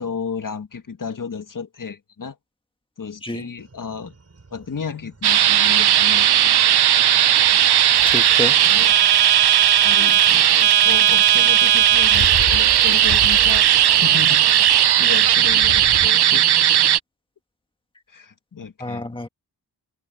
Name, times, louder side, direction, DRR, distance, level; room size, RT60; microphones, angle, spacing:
voice 1, 0.0-2.4 3.0-4.1 4.5-6.6 8.6-8.9 9.8-16.5 18.1-19.1, left 6 dB, 55° left, 1.8 m, -33 dB
sound 1, 3.6-15.9, right 3 dB, 40° right, 7.3 m, -51 dB
sound 2, 5.2-17.0, right 11 dB, 80° right, 0.6 m, -16 dB
Bicycle, 8.0-16.1, left 5 dB, 75° left, 3.5 m, -33 dB
voice 2, 8.0-8.6 18.8-19.3, left 2 dB, 15° left, 1.9 m, -28 dB
wide cardioid pair, 135°, 39 cm